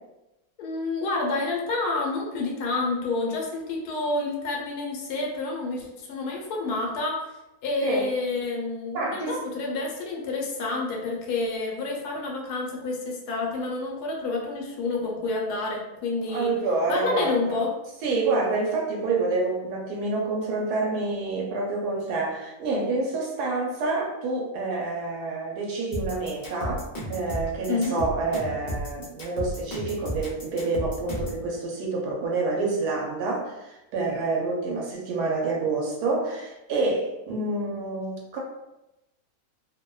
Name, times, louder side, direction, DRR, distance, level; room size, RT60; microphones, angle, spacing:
voice 1, 0.6-7.3 7.6-16.6 16.9-17.7 27.7-28.1, left 3 dB, 85° left, -1 dB, 1.1 m, -29 dB
voice 2, 8.9-9.4 16.3-17.6 18.0-38.4, right 3 dB, 85° right, -2 dB, 1.1 m, -28 dB
sound 1, 25.9-31.4, equal, 60° left, 0.4 m, -33 dB
2.8 x 2.1 x 2.2 m, 0.95 s
omnidirectional pair, 1.6 m